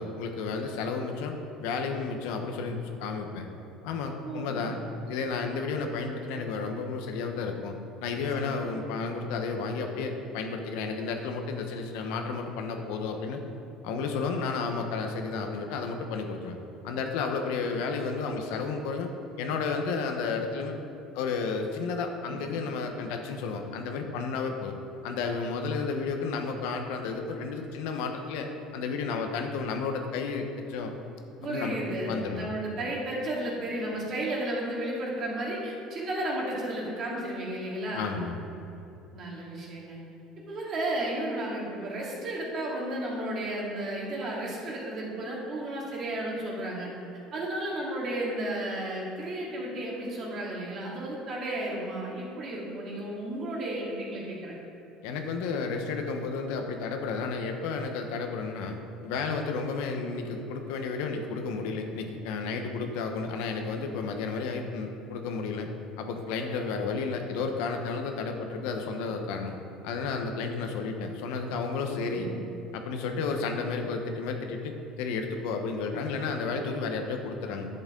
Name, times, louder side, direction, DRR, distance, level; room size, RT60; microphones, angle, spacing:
voice 1, 0.0-1.4 1.6-3.5 3.8-4.8 5.1-7.8 8.0-13.4 13.8-16.6 16.8-19.1 19.4-20.7 21.1-24.7 25.0-30.9 31.4-31.8 32.1-32.5 37.9-38.4 55.0-58.8 59.0-65.7 66.0-69.6 69.8-72.3 72.7-77.7, left 4 dB, 80° left, 4 dB, 1.0 m, -32 dB
voice 2, 4.2-4.7 8.4-8.5 22.3-22.5 31.4-38.2 39.1-40.0 40.4-46.9 47.3-54.5 72.0-72.4, right 1 dB, 40° right, -4 dB, 2.3 m, -33 dB
10.5 x 7.9 x 3.8 m, 2.9 s
cardioid pair, 160°, 0 cm